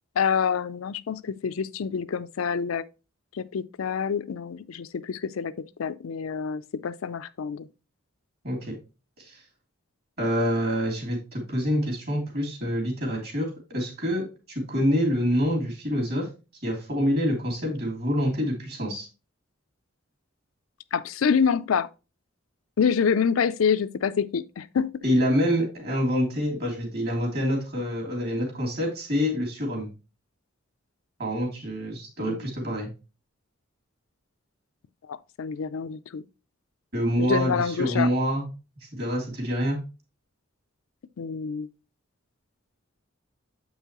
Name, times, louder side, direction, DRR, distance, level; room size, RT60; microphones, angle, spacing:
voice 1, 0.2-2.8 3.3-7.7 20.9-21.9 22.8-24.9 32.3-32.4 35.1-36.2 37.2-38.1 41.2-41.7, left 6 dB, 85° left, 0.4 m, -27 dB
voice 2, 10.2-16.3 16.6-19.1 25.0-29.9 31.2-32.9 36.9-38.5 38.9-39.8, equal, 50° right, 2.9 m, -26 dB
7.4 x 5.5 x 2.9 m
head